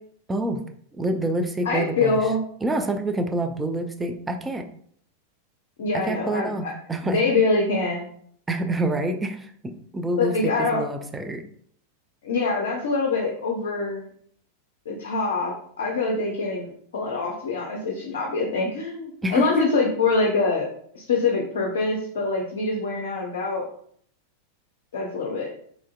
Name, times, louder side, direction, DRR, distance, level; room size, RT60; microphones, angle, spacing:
voice 1, 0.3-0.6 1.0-2.3 2.6-4.7 6.0-7.2 8.5-11.4 19.2-19.6, right 1 dB, 10° right, 6 dB, 0.3 m, -27 dB
voice 2, 1.6-2.4 5.8-6.7 7.0-8.1 10.1-10.8 12.2-14.0 14.9-20.7 20.9-23.7 24.9-25.5, left 3 dB, 60° left, 0 dB, 0.5 m, -24 dB
3.1 x 2.5 x 2.4 m, 0.62 s
figure-of-eight pair, 90°, 0 cm